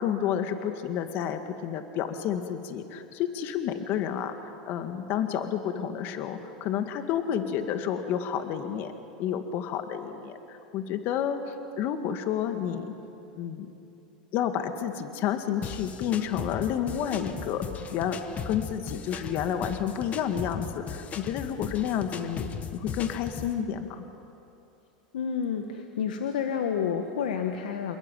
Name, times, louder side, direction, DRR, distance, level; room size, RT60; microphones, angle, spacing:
voice 1, 0.0-8.9 9.2-12.9 13.4-13.7 14.3-17.6 17.9-18.2 18.5-24.0, left 9 dB, 50° left, 7 dB, 2.0 m, -30 dB
sound 1, 15.6-23.6, left 6 dB, 35° left, 1.7 m, -37 dB
voice 2, 25.1-28.0, left 7 dB, 80° left, 5 dB, 1.7 m, -29 dB
28.0 x 21.0 x 9.2 m, 2.8 s
hypercardioid pair, 110°, 4 cm